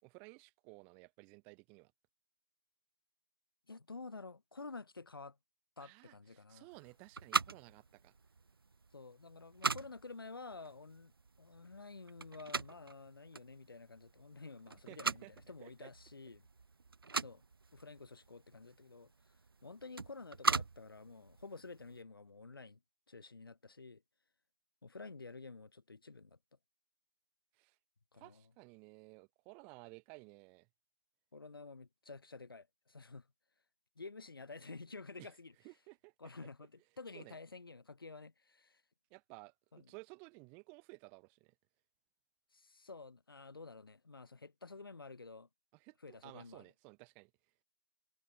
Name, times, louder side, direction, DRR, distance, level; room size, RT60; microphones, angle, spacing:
voice 1, 0.0-1.9 5.8-8.1 14.9-15.3 15.6-15.9 27.6-27.8 28.1-30.7 35.2-35.3 35.6-36.1 37.1-37.4 39.1-41.5 45.7-47.3, right 32 dB, 10° right, 2.8 m, -56 dB
voice 2, 3.7-5.4 5.8-6.7 8.9-11.1 11.4-16.5 17.2-17.4 17.7-19.1 19.6-22.8 23.1-24.0 24.8-26.4 28.1-28.4 31.3-33.3 34.0-35.5 36.2-38.8 39.7-39.8 42.5-45.5 46.0-46.6, left 3 dB, 60° left, 5.8 m, -51 dB
sound 1, 6.7-22.0, right 4 dB, 60° right, 0.8 m, -41 dB
figure-of-eight pair, 165°, 13 cm